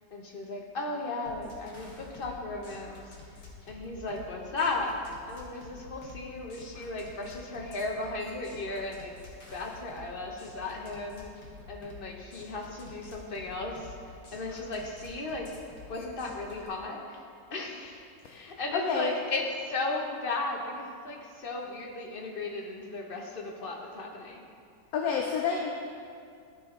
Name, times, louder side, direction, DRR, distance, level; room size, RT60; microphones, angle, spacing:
voice 1, 0.1-5.0 5.3-11.3 11.7-15.5 15.9-17.2 17.5-24.5, left 2 dB, 45° left, 0 dB, 0.8 m, -36 dB
sound 1, 1.3-16.7, left 3 dB, 85° left, 2.0 m, -49 dB
voice 2, 18.7-19.1 24.9-25.7, left 6 dB, 65° left, 1 dB, 1.0 m, -29 dB
13.0 x 4.8 x 3.7 m, 2.3 s
omnidirectional pair, 1.8 m